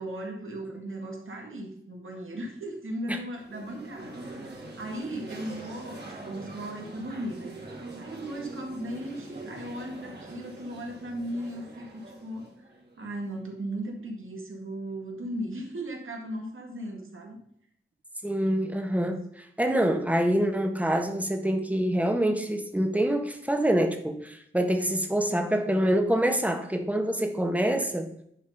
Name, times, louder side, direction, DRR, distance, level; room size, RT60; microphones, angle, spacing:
voice 1, 0.0-4.5 4.8-7.5 8.0-17.4, right 1 dB, 85° right, 1 dB, 2.0 m, -37 dB
sound 1, 3.3-13.3, right 2 dB, 55° right, 2.5 m, -43 dB
voice 2, 18.2-28.1, right 1 dB, 5° right, 4 dB, 1.3 m, -26 dB
10.5 x 4.2 x 5.4 m, 0.70 s
wide cardioid pair, 65°, 20 cm